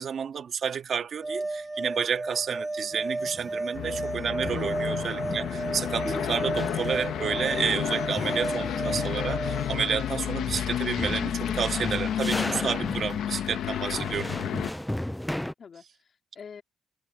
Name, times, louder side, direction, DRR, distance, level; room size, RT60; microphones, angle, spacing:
voice 1, 0.0-14.4, right 7 dB, 55° right, 2.3 m, -30 dB
sound 1, 1.2-9.8, right 2 dB, 15° right, 1.0 m, -33 dB
sound 2, 2.9-4.1 4.4-15.5, left 1 dB, 5° left, 0.5 m, -37 dB
Aircraft, 3.7-14.7, left 10 dB, 75° left, 1.4 m, -31 dB
voice 2, 4.9-5.3 13.9-14.5 15.6-16.6, left 6 dB, 50° left, 2.6 m, -47 dB
cardioid pair, 90°, 0 cm